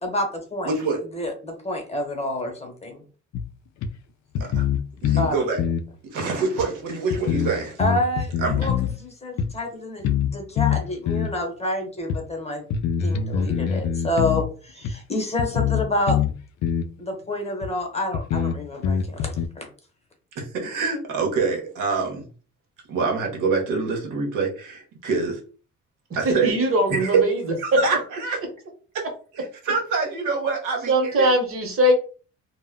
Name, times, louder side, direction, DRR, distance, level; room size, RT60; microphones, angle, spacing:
voice 1, 0.0-0.7 1.1-3.0 5.2-5.4 7.8-10.0 10.3-12.6 13.0-16.2 17.0-19.7, left 1 dB, 20° left, 3 dB, 0.9 m, -28 dB
voice 2, 0.6-1.0 4.5-4.7 5.0-5.6 6.1-7.8 8.4-8.7 20.4-22.2 22.9-25.4 26.2-26.5 26.9-27.1 27.6-28.4 28.9-29.0 29.4-31.3, right 4 dB, 90° right, 1 dB, 0.9 m, -26 dB
sound 1, 3.3-3.4 3.8-3.9 4.3-5.3 5.6-5.9 6.6-6.7 7.1-8.9 9.4-9.5 10.0-10.3 10.6-11.4 12.1-12.2 12.7-14.5 14.8-14.9 15.4-16.3 16.6-16.9 17.6-17.7 18.1-19.5, left 8 dB, 65° left, 0.4 m, -24 dB
voice 3, 26.2-27.4 27.7-27.8 30.9-31.9, right 1 dB, 45° right, 3 dB, 1.0 m, -20 dB
2.1 x 2.1 x 3.5 m, 0.39 s
cardioid pair, 90°, 30 cm